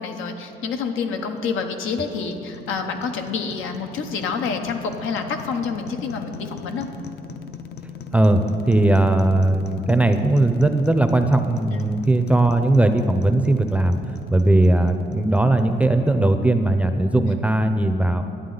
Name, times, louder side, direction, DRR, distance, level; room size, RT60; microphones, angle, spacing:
voice 1, 0.0-6.9 11.7-11.8, left 5 dB, 85° left, 5 dB, 0.8 m, -28 dB
sound 1, 1.1-16.3, left 5 dB, 55° left, 0.6 m, -39 dB
voice 2, 8.1-14.0 14.3-18.2, right 2 dB, 5° right, 8 dB, 0.5 m, -18 dB
11.0 x 8.3 x 3.9 m, 2.6 s
cardioid pair, 90°, 20 cm